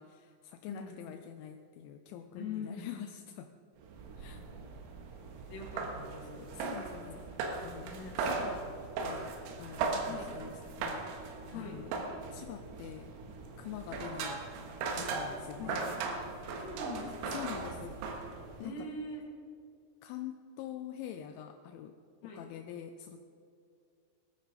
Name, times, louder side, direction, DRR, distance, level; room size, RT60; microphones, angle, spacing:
voice 1, 0.0-3.5 4.2-4.4 6.5-7.3 7.6-7.9 8.2-8.7 9.0-11.9 12.3-13.1 13.6-14.5 15.0-15.8 17.2-18.0 18.6-18.9 20.0-23.3, left 10 dB, 85° left, 6 dB, 2.7 m, -45 dB
voice 2, 0.7-1.0 2.4-2.9 5.5-6.5 7.8-8.2 10.1-10.3 11.5-11.8 15.6-15.9 16.3-17.4 18.6-19.3 22.2-22.4, left 3 dB, 50° left, -2 dB, 3.5 m, -43 dB
Climbing ladder, 3.8-18.7, right 4 dB, 90° right, 4.0 m, -38 dB
19.0 x 13.0 x 4.1 m, 2.4 s
omnidirectional pair, 5.9 m